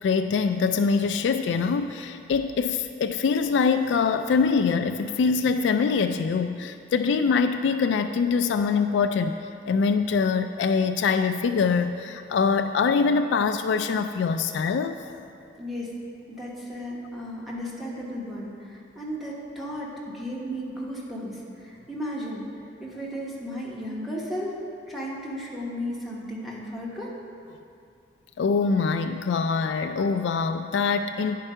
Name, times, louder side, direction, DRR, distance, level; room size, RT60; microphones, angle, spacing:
voice 1, 0.0-15.1 28.4-31.4, left 5 dB, 80° left, 7 dB, 0.3 m, -24 dB
voice 2, 15.6-15.9 16.3-22.5 22.8-24.5 24.9-27.1, equal, ahead, -6 dB, 1.3 m, -34 dB
9.9 x 4.6 x 5.5 m, 2.5 s
head